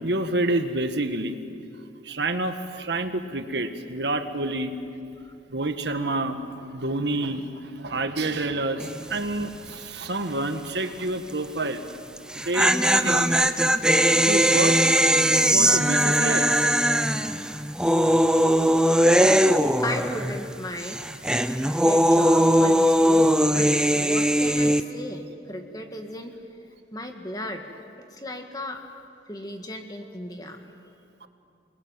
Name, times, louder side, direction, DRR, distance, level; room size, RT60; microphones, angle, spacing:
voice 1, 0.0-1.4 2.0-4.8 5.5-11.8 12.3-12.7 13.0-13.3 14.2-15.1 15.5-16.8, right 2 dB, 65° right, 7 dB, 1.6 m, -28 dB
sound 1, 8.8-9.2 9.4-9.5 12.2-20.5 20.8-24.8, equal, 5° right, 0.7 m, -20 dB
voice 2, 19.8-21.0 21.8-23.7 24.0-26.3 26.9-27.6 28.1-28.8 29.3-30.6, left 1 dB, 20° left, 4 dB, 1.9 m, -35 dB
28.5 x 21.0 x 9.0 m, 2.5 s
head